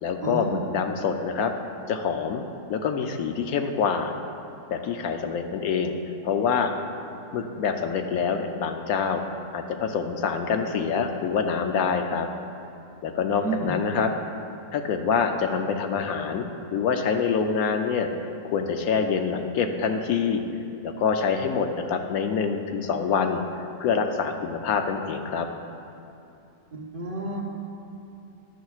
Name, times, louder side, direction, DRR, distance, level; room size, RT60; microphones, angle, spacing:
voice 1, 0.0-1.5 1.9-2.4 2.7-4.1 4.7-6.0 6.2-6.7 7.3-9.2 9.5-12.3 13.0-14.1 14.7-16.4 16.7-18.1 18.4-20.4 20.8-23.4 23.8-25.5, left 6 dB, 80° left, 5 dB, 1.1 m, -26 dB
voice 2, 13.3-13.7 26.7-27.4, right 2 dB, 40° right, -2 dB, 1.1 m, -31 dB
12.5 x 10.0 x 2.4 m, 2.8 s
omnidirectional pair, 1.6 m